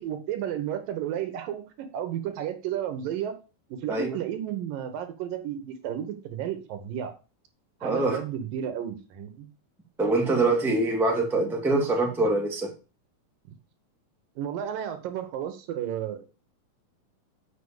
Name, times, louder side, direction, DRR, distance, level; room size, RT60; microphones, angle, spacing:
voice 1, 0.0-3.4 3.7-7.1 7.8-9.5 14.4-16.2, right 10 dB, 75° right, 2.8 m, -32 dB
voice 2, 7.8-8.2 10.0-12.7, right 2 dB, ahead, 1.5 m, -24 dB
7.5 x 6.5 x 7.2 m
omnidirectional pair, 4.1 m